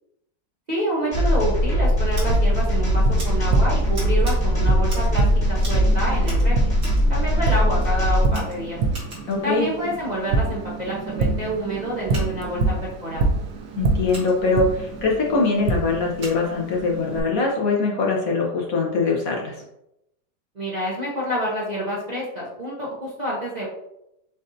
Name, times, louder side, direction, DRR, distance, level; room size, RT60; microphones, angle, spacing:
voice 1, 0.7-6.7 7.1-8.8 9.4-12.7 13.0-13.3 20.5-23.7, equal, 35° right, -6 dB, 0.8 m, -28 dB
sound 1, 1.1-8.3, equal, 30° left, 1.1 m, -20 dB
Scissors, 2.1-2.3 3.2-3.3 3.9-4.4 4.8-5.2 5.6-5.8 6.2-7.0 7.8-7.9 8.3-9.4 12.0-12.3 14.1-14.3 16.2-16.4, right 1 dB, 55° right, 2.1 m, -39 dB
Tap, 2.3-17.2, right 3 dB, 75° right, 1.2 m, -27 dB
voice 2, 9.3-9.7 13.7-19.6, left 3 dB, 60° left, -1 dB, 1.2 m, -22 dB
7.4 x 2.6 x 2.7 m, 0.84 s
omnidirectional pair, 1.8 m